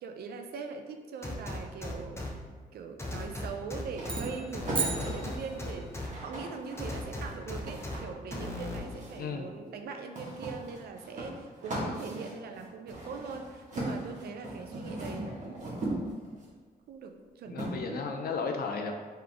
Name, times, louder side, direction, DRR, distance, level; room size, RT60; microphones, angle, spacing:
voice 1, 0.0-2.3 2.7-16.1 16.9-18.1, right 5 dB, 80° right, 5 dB, 0.5 m, -42 dB
sound 1, 1.2-2.3 3.0-4.2 4.5-6.1 6.8-8.0 8.3-8.8, left 2 dB, 15° left, 0.7 m, -37 dB
sound 2, 3.9-9.3 10.1-16.5 17.6-17.7, right 1 dB, 50° right, 1.4 m, -38 dB
sound 3, 4.0-6.0, right 5 dB, 35° right, 0.6 m, -36 dB
voice 2, 9.1-9.5 11.7-12.0 17.5-18.9, left 5 dB, 75° left, 4 dB, 0.5 m, -34 dB
3.8 x 3.2 x 3.4 m, 1.5 s
cardioid pair, 75°, 16 cm